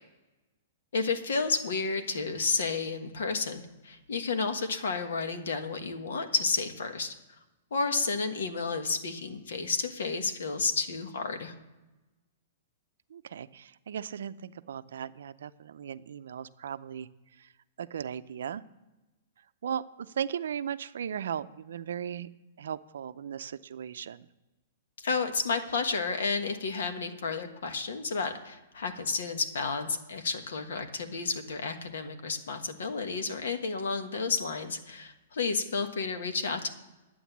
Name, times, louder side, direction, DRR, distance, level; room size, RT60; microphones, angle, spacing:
voice 1, 0.9-7.1 7.7-11.5 25.0-36.7, left 4 dB, 80° left, 7 dB, 1.4 m, -31 dB
voice 2, 13.1-17.1 17.4-17.5 17.8-18.6 19.6-22.3 22.6-24.3, right 8 dB, 75° right, 13 dB, 0.5 m, -37 dB
11.0 x 8.5 x 7.1 m, 1.1 s
hypercardioid pair, 165°, 0 cm